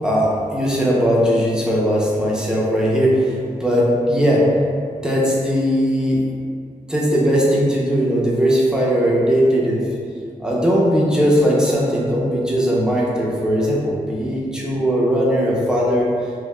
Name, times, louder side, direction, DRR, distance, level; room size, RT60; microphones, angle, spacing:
voice 1, 0.0-4.5 5.0-6.3 6.9-9.9 10.4-16.1, equal, 5° right, -5 dB, 0.7 m, -18 dB
4.8 x 2.2 x 2.2 m, 2.2 s
wide cardioid pair, 105°, 15 cm